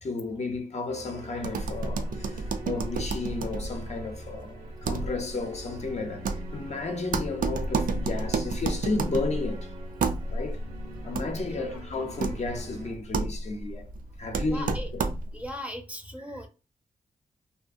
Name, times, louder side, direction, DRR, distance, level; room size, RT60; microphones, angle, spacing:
voice 1, 0.0-9.7 10.3-10.6 11.0-13.9 14.2-15.0, left 3 dB, 45° left, 0.6 m, -33 dB
sound 1, 0.9-12.9, equal, 90° right, 1.1 m, -44 dB
sound 2, 1.4-15.5, right 4 dB, 65° right, 0.4 m, -32 dB
voice 2, 14.4-14.9 15.3-16.5, equal, 10° right, 0.6 m, -38 dB
2.7 x 2.6 x 2.4 m
wide cardioid pair, 95°, 15 cm